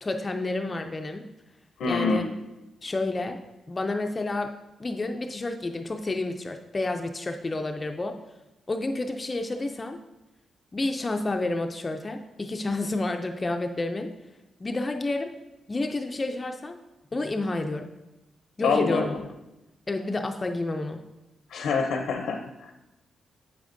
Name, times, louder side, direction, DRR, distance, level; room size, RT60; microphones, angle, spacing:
voice 1, 0.0-1.2 1.8-2.3 2.8-3.4 3.7-8.1 8.7-10.0 10.7-14.1 14.6-15.4 15.7-16.8 17.1-17.9 18.6-19.2 19.9-21.0, left 2 dB, 20° left, 5 dB, 0.3 m, -30 dB
voice 2, 1.8-2.2 18.6-19.2 21.5-22.7, left 4 dB, 90° left, 3 dB, 0.6 m, -26 dB
8.4 x 8.0 x 2.6 m, 0.99 s
wide cardioid pair, 170°, 0 cm